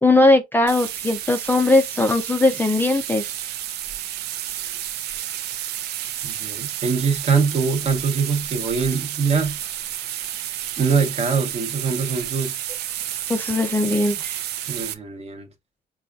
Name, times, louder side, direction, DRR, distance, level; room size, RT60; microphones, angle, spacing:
voice 1, 0.0-3.3 13.3-14.4, left 2 dB, 10° left, 0.4 m, -19 dB
sound 1, 0.7-14.9, right 11 dB, 75° right, 0.5 m, -31 dB
voice 2, 6.2-9.6 10.8-12.5 14.7-15.5, right 5 dB, 40° right, 0.9 m, -23 dB
5.5 x 2.3 x 2.3 m
cardioid pair, 110°, 17 cm